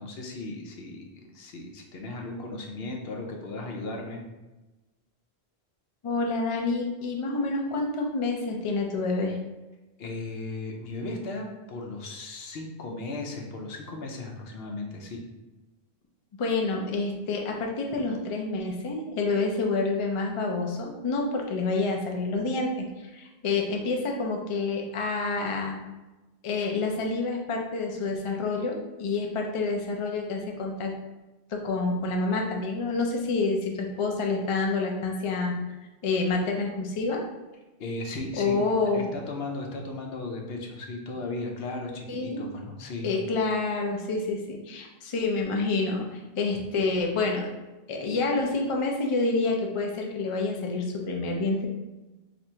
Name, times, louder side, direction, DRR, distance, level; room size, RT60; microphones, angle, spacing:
voice 1, 0.0-4.2 10.0-15.3 37.8-38.6 38.9-43.1, left 2 dB, 70° left, 1 dB, 0.8 m, -36 dB
voice 2, 6.0-9.4 16.4-25.8 26.4-30.9 31.5-35.5 36.0-37.2 38.4-39.1 42.1-42.5 43.0-47.5 47.9-51.7, left 3 dB, 50° left, 1 dB, 0.4 m, -28 dB
2.8 x 2.5 x 4.3 m, 1.1 s
omnidirectional pair, 1.1 m